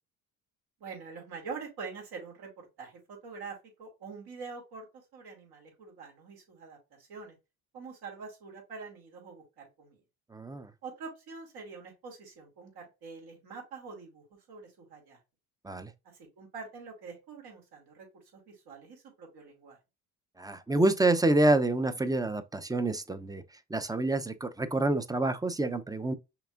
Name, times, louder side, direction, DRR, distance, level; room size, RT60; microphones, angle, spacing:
voice 1, 0.8-7.4 7.7-10.0 10.8-15.2 16.1-18.1 18.3-19.8, right 4 dB, 70° right, 2.7 m, -45 dB
voice 2, 10.3-10.7 15.6-15.9 20.4-23.4 23.7-26.1, right 2 dB, 10° right, 0.6 m, -27 dB
5.9 x 3.5 x 2.5 m
supercardioid pair, 70°, 39 cm